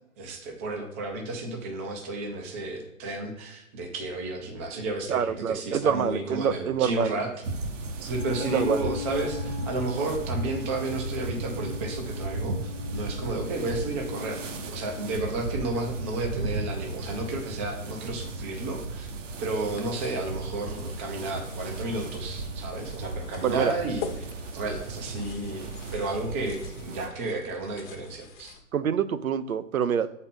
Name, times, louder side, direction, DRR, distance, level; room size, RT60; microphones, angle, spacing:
voice 1, 0.2-7.3 8.0-14.4 14.7-19.1 19.4-24.0 24.5-28.5, right 2 dB, 10° right, 2 dB, 0.4 m, -32 dB
voice 2, 5.1-7.2 8.4-8.9 23.4-23.7 28.7-30.1, right 8 dB, 80° right, 13 dB, 0.7 m, -26 dB
sound 1, 7.4-27.1, right 2 dB, 60° right, 1.0 m, -35 dB
Wind instrument woodwind instrument, 8.1-14.7, left 11 dB, 60° left, 0.7 m, -40 dB
sound 2, 19.4-28.6, left 6 dB, 35° left, 0.9 m, -45 dB
7.2 x 4.3 x 5.2 m, 0.89 s
hypercardioid pair, 135°, 41 cm